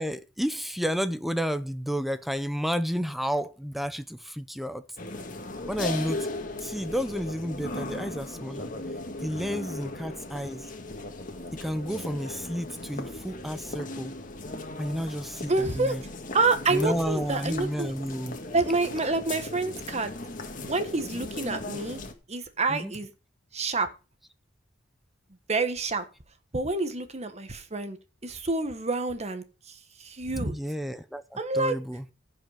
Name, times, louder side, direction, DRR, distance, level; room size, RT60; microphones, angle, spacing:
voice 1, 0.0-4.8 5.7-6.3 6.6-8.7 9.2-10.7 11.5-14.1 14.8-16.0 16.7-18.4 22.7-22.9 30.5-32.0, equal, ahead, 0.6 m, -31 dB
sound 1, 5.0-22.1, left 2 dB, 45° left, 1.8 m, -37 dB
voice 2, 15.5-16.0 16.3-17.9 18.5-20.1 20.7-22.0 22.3-23.1 23.5-23.9 25.5-26.0 26.5-28.0 28.2-30.6 31.4-31.8, right 3 dB, 35° right, 1.4 m, -28 dB
15.5 x 5.7 x 5.6 m
head